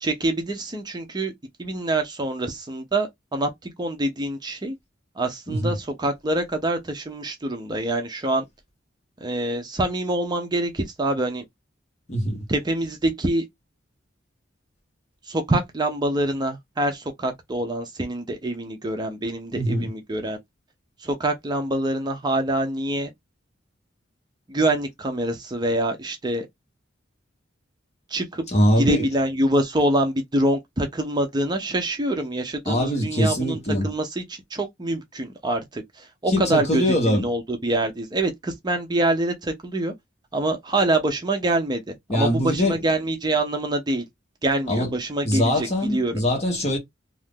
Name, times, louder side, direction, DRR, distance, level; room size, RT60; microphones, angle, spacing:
voice 1, 0.0-1.3 1.6-4.8 5.2-8.4 9.2-11.4 12.5-13.5 15.3-20.4 21.0-23.1 24.5-26.5 28.1-28.4 28.8-33.6 33.8-39.9 40.3-44.0 44.4-46.1, right 1 dB, 20° right, 0.5 m, -25 dB
voice 2, 12.1-12.4 19.5-19.9 28.5-29.1 32.6-33.9 36.3-37.3 42.1-42.8 44.7-44.9 45.2-46.8, equal, 35° left, 1.3 m, -22 dB
2.7 x 2.5 x 3.6 m
head